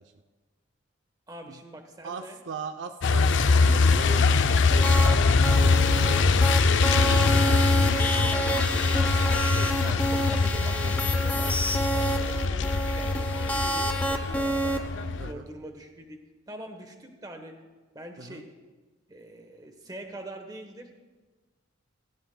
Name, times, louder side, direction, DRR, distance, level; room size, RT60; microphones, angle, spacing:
voice 1, 1.3-2.4 7.9-8.9 9.8-12.7 13.0-14.8 15.2-16.2 16.5-17.6 17.9-18.5 19.1-20.9, right 1 dB, 20° right, 5 dB, 1.0 m, -43 dB
voice 2, 2.0-4.6 5.9-6.4 12.0-12.3 15.2-15.5 18.2-18.4, right 5 dB, 60° right, 7 dB, 0.5 m, -40 dB
Truck, 3.0-15.3, left 4 dB, 65° left, 0.5 m, -23 dB
sound 1, 4.3-10.0, left 1 dB, 80° left, 2.9 m, -48 dB
sound 2, 4.7-5.2 5.4-14.8, right 1 dB, 10° left, 0.6 m, -29 dB
17.0 x 15.5 x 2.2 m, 1.3 s
head